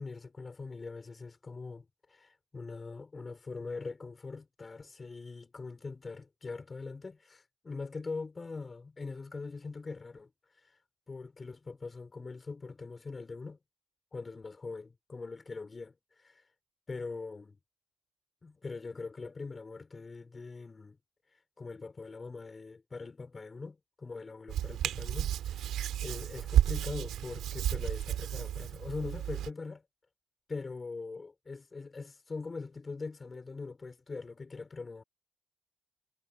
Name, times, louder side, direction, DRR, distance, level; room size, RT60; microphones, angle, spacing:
voice 1, 0.0-10.3 11.1-13.6 14.1-16.4 16.9-17.6 18.4-21.0 21.6-29.8 30.5-35.0, left 4 dB, 30° left, 4.7 m, -42 dB
Hands, 24.5-29.5, right 11 dB, 80° right, 3.9 m, -32 dB
cardioid pair, 90°, 0 cm